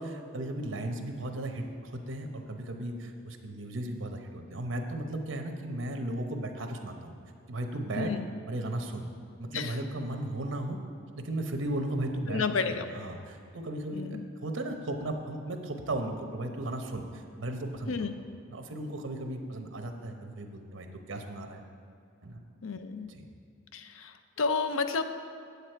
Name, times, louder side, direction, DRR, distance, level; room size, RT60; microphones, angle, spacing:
voice 1, 0.0-7.1 7.5-8.1 8.5-9.1 9.4-10.8 11.1-18.1 18.5-21.6 22.2-22.4 23.1-23.3, right 1 dB, 80° right, 5 dB, 0.9 m, -36 dB
voice 2, 12.3-12.9 13.9-14.2 17.9-18.2 22.6-23.1 23.7-25.0, left 4 dB, 90° left, 9 dB, 0.5 m, -31 dB
8.3 x 8.2 x 4.5 m, 2.5 s
head